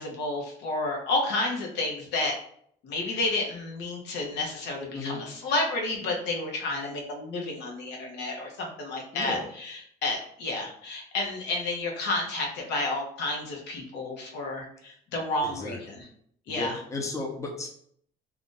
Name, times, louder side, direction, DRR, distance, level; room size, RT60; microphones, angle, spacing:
voice 1, 0.0-2.3 2.8-16.1 16.5-16.8, left 2 dB, 85° left, 1 dB, 0.8 m, -31 dB
voice 2, 15.4-16.0 16.5-17.7, left 2 dB, 20° left, 1 dB, 0.6 m, -34 dB
2.5 x 2.3 x 3.7 m, 0.65 s
cardioid pair, 110°, 17 cm